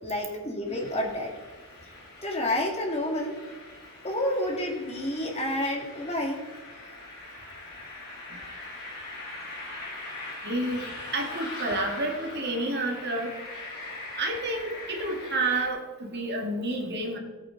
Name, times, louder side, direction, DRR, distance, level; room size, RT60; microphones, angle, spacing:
voice 1, 0.0-1.3 2.2-3.3 4.0-6.4, left 1 dB, 30° left, 1 dB, 2.1 m, -29 dB
sound 1, 0.7-15.7, left 2 dB, 50° left, 4.0 m, -42 dB
voice 2, 10.4-10.8 11.1-13.3 14.2-17.2, right 2 dB, 50° right, 2 dB, 1.9 m, -29 dB
17.0 x 8.5 x 3.9 m, 1.2 s
head